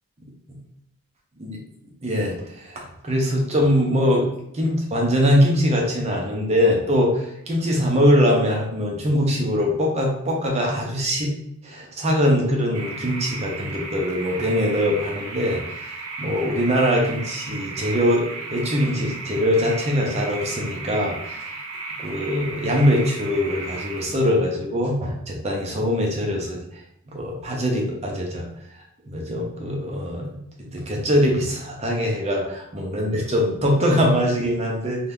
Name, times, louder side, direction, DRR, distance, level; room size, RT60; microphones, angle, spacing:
voice 1, 2.0-4.3 4.5-11.3 11.6-21.6 22.0-26.6 27.1-28.5 29.0-35.1, equal, 30° right, -1 dB, 0.6 m, -22 dB
sound 1, 12.7-24.1, right 3 dB, 80° right, 0.6 m, -35 dB
2.7 x 2.1 x 3.4 m, 0.75 s
head